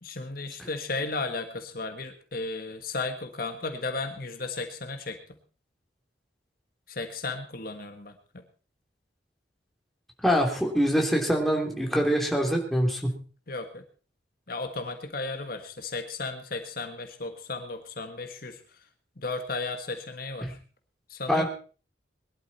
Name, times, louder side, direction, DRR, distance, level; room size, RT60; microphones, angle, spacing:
voice 1, 0.0-5.4 6.9-8.1 13.5-13.8 14.5-18.6 19.2-20.6 21.1-21.4, left 3 dB, 50° left, 7 dB, 1.6 m, -34 dB
voice 2, 10.2-13.1 20.4-20.5 21.3-21.4, equal, ahead, 1 dB, 3.2 m, -24 dB
21.5 x 12.0 x 4.3 m, 0.39 s
head